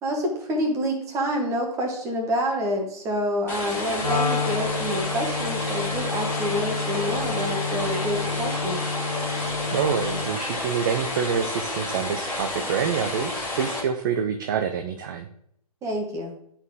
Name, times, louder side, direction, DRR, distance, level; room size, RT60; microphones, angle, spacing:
voice 1, 0.0-8.8 15.8-16.3, equal, 15° right, 1 dB, 1.4 m, -27 dB
sound 1, 3.5-13.8, left 2 dB, 10° left, 1.8 m, -30 dB
Wind instrument woodwind instrument, 4.0-10.4, left 4 dB, 90° left, 0.5 m, -30 dB
voice 2, 9.7-15.3, right 7 dB, 35° right, 6 dB, 0.5 m, -27 dB
10.5 x 4.2 x 3.5 m, 0.71 s
figure-of-eight pair, 125°, 20 cm